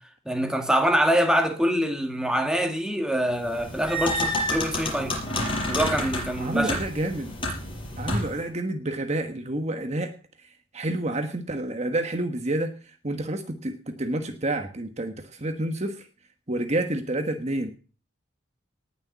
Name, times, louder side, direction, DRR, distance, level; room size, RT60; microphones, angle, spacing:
voice 1, 0.3-5.2 5.7-6.8, equal, 5° right, 1.8 m, -24 dB
sound 1, 3.5-8.4, left 1 dB, 25° left, 5.2 m, -29 dB
voice 2, 6.4-7.3 8.0-10.1 10.4-10.5 10.7-16.1 16.5-17.7, right 1 dB, 30° right, 1.3 m, -29 dB
19.0 x 6.8 x 8.1 m
head